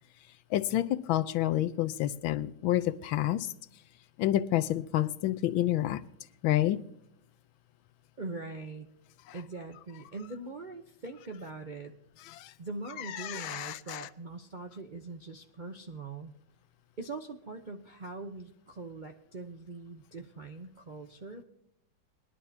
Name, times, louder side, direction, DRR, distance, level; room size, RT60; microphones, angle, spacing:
voice 1, 0.5-3.5 4.2-6.0 6.4-6.8 12.3-12.5 13.0-14.1, left 13 dB, 85° left, 1.5 m, -29 dB
voice 2, 8.2-8.9 9.3-11.9 12.6-16.3 17.0-21.4, right 3 dB, 55° right, 0.5 m, -42 dB
21.0 x 11.0 x 2.8 m
omnidirectional pair, 2.1 m